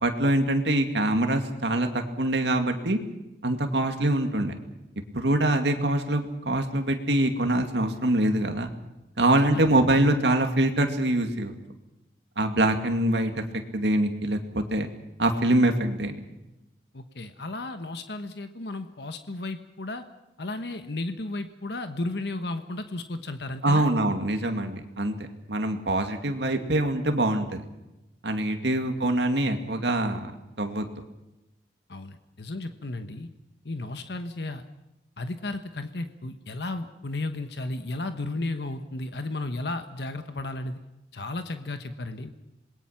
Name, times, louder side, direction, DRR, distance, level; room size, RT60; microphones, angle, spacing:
voice 1, 0.0-3.0 3.4-4.5 5.1-8.7 9.2-11.5 12.4-13.4 13.7-14.9 15.2-16.2 23.6-25.1 25.5-27.6 28.2-30.3 30.6-30.9, right 1 dB, 70° right, 5 dB, 2.4 m, -24 dB
voice 2, 16.9-20.0 20.4-23.9 31.9-33.3 33.6-34.6 35.2-40.8 41.1-42.3, left 2 dB, 65° left, 8 dB, 1.2 m, -34 dB
27.0 x 21.0 x 5.9 m, 0.97 s
head